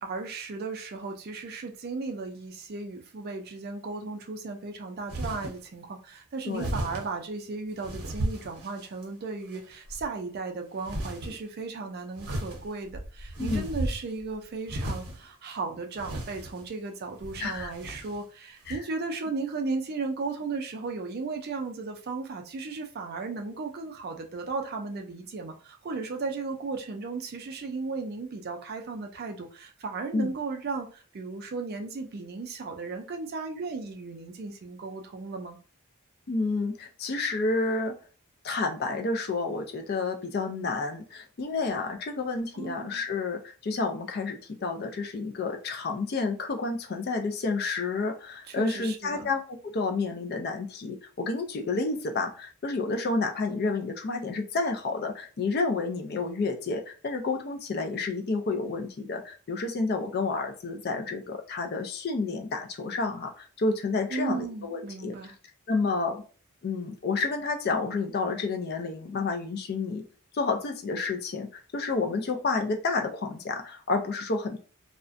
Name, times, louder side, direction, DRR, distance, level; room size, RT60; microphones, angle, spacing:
voice 1, 0.0-35.6 42.5-43.0 48.5-49.3 64.1-65.3, right 3 dB, 45° right, 4 dB, 0.4 m, -35 dB
sound 1, 5.1-5.6 6.6-7.1 7.8-9.0 9.5-10.0 10.8-11.4 12.2-14.2 14.7-15.2 15.9-16.7 17.2-18.2 18.6-18.8, right 1 dB, 80° right, 0.7 m, -34 dB
voice 2, 13.4-13.7 17.4-17.7 18.7-18.8 30.1-30.3 36.3-37.9 38.4-65.1 65.7-66.2 66.6-70.0 70.3-74.6, left 3 dB, 45° left, 4 dB, 0.4 m, -30 dB
2.4 x 2.1 x 2.5 m, 0.37 s
head